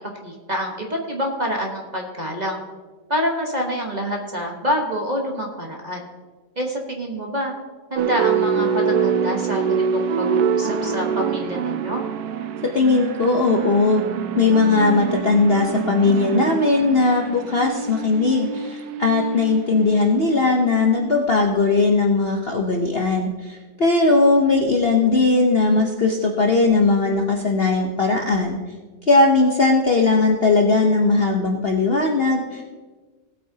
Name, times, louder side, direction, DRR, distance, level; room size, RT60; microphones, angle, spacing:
voice 1, 0.2-2.6 3.1-6.1 6.6-7.5 7.9-12.0, equal, 30° right, 0 dB, 1.1 m, -27 dB
sound 1, 8.0-21.3, right 6 dB, 70° right, 1.1 m, -25 dB
voice 2, 12.7-14.0 14.4-28.6 29.1-32.6, left 3 dB, 45° left, 1 dB, 0.8 m, -18 dB
18.0 x 8.6 x 2.8 m, 1.4 s
omnidirectional pair, 1.9 m